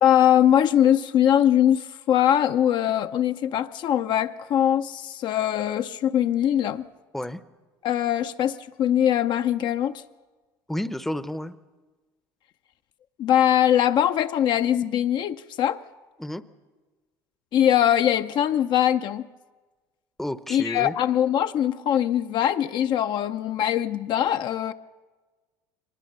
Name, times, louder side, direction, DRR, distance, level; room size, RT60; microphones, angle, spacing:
voice 1, 0.0-6.9 7.8-10.0 13.2-15.8 17.5-19.3 20.5-24.7, left 10 dB, 55° left, 0.6 m, -22 dB
voice 2, 10.7-11.6 16.2-16.4 20.2-20.9, left 1 dB, 5° left, 0.7 m, -31 dB
23.0 x 19.5 x 6.7 m
supercardioid pair, 85°, 9 cm